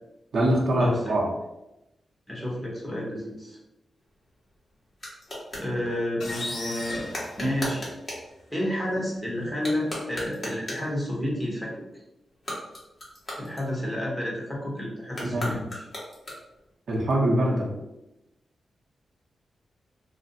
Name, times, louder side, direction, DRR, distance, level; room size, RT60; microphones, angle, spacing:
voice 1, 0.3-1.3 15.2-15.6 16.9-17.7, right 1 dB, 60° right, -2 dB, 0.6 m, -23 dB
voice 2, 2.3-3.6 5.6-7.1 7.4-7.9 8.5-11.7 13.4-15.8, left 1 dB, 10° left, -4 dB, 1.0 m, -30 dB
sound 1, 4.0-5.7 7.1-8.3 9.5-11.0 12.3-14.1 15.1-16.7, left 1 dB, 35° left, 1.2 m, -37 dB
sound 2, 6.2-8.2, left 2 dB, 90° left, 0.9 m, -36 dB
2.5 x 2.1 x 3.9 m, 0.93 s
wide cardioid pair, 115°, 0 cm